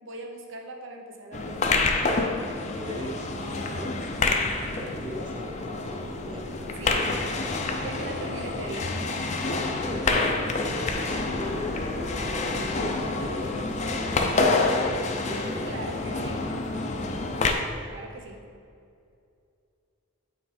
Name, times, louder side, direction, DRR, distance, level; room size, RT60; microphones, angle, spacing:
voice 1, 0.0-2.3 6.5-7.1 7.8-9.0 15.6-16.4 17.9-18.5, right 2 dB, 55° right, 2 dB, 0.8 m, -40 dB
sound 1, 1.3-17.5, left 3 dB, 30° left, 0.4 m, -28 dB
voice 2, 2.7-7.3 9.8-10.2 10.6-16.5, equal, 20° right, 3 dB, 0.5 m, -39 dB
7.6 x 4.3 x 4.2 m, 2.4 s
head